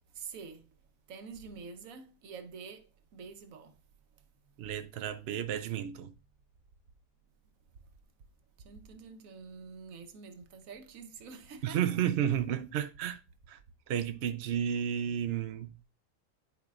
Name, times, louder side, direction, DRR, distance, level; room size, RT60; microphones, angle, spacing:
voice 1, 0.1-0.7 1.1-3.7 8.6-12.0, right 5 dB, 85° right, 1.2 m, -47 dB
voice 2, 4.6-6.1 11.6-13.2 13.5-13.6 13.9-15.8, right 9 dB, 60° right, 0.8 m, -32 dB
11.0 x 4.7 x 2.4 m
omnidirectional pair, 1.4 m